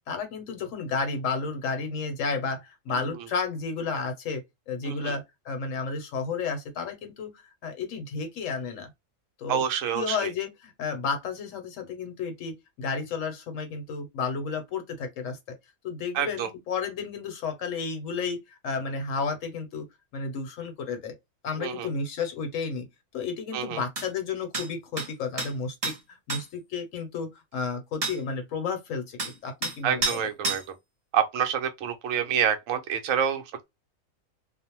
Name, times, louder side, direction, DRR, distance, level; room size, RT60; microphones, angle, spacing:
voice 1, 0.1-8.9 9.4-9.6 9.9-15.4 15.8-19.9 20.1-21.1 21.4-22.9 23.1-30.3, left 5 dB, 75° left, 1.0 m, -32 dB
voice 2, 4.8-5.1 9.5-10.2 16.1-16.5 21.6-21.9 23.5-23.8 29.8-30.6 31.1-33.6, right 8 dB, 75° right, 0.9 m, -27 dB
sound 1, 24.0-24.1 24.5-24.7 25.0-25.1 25.4-25.5 25.8-26.0 26.3-26.4 28.0-28.2 29.2-29.3 29.6-29.8 30.0-30.2 30.4-30.6, right 3 dB, 35° right, 0.7 m, -29 dB
2.5 x 2.0 x 2.9 m
omnidirectional pair, 1.4 m